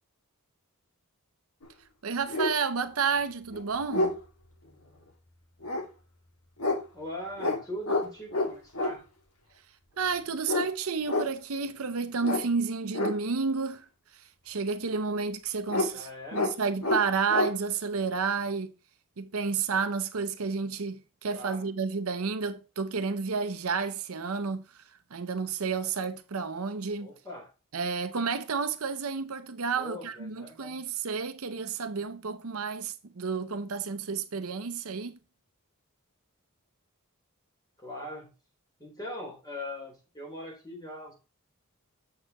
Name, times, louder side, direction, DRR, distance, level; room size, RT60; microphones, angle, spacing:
sound 1, 1.6-1.7 2.3-2.5 3.2-3.3 3.5-4.2 5.6-5.8 6.6-6.8 7.4-7.6 7.8-8.0 8.3-8.9 10.4-10.7 11.0-11.3 12.2-12.4 12.9-13.1 15.7-15.9 16.3-16.5 16.8-17.0 17.3-17.5, left 2 dB, 90° left, 2.0 m, -28 dB
voice 1, 2.0-4.2 10.0-18.7 19.2-24.8 25.1-27.1 27.7-35.2, right 5 dB, 65° right, 0.7 m, -31 dB
voice 2, 6.9-9.0 15.9-16.5 21.3-21.6 27.0-27.5 29.8-30.8 37.8-38.3 38.8-41.1, left 1 dB, 20° left, 3.8 m, -41 dB
7.7 x 6.5 x 3.0 m
head